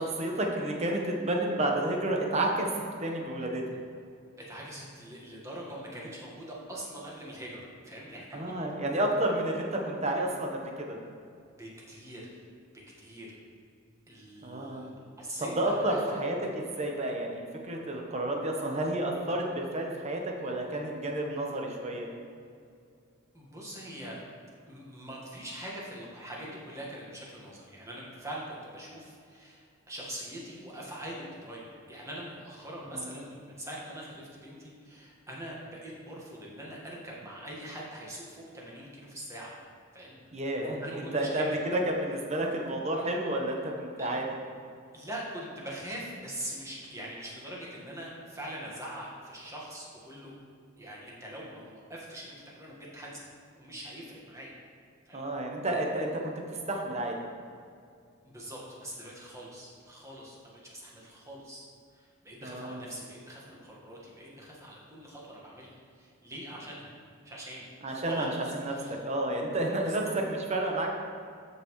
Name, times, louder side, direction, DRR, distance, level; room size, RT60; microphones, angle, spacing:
voice 1, 0.0-3.8 8.3-11.0 14.4-14.9 15.5-22.1 32.9-33.3 40.3-44.2 55.1-57.2 62.4-62.9 67.8-71.0, right 1 dB, 30° right, 1 dB, 1.0 m, -31 dB
voice 2, 4.5-8.4 11.6-12.2 12.7-13.3 14.1-14.9 15.2-16.0 23.3-24.2 24.7-39.5 39.9-40.2 40.8-41.4 44.0-44.1 44.9-50.3 50.8-53.2 53.5-54.5 55.0-55.2 58.2-61.6 61.9-66.9 67.2-69.0 69.8-70.1, right 1 dB, 15° right, -4 dB, 1.5 m, -43 dB
13.5 x 5.6 x 3.2 m, 2.4 s
head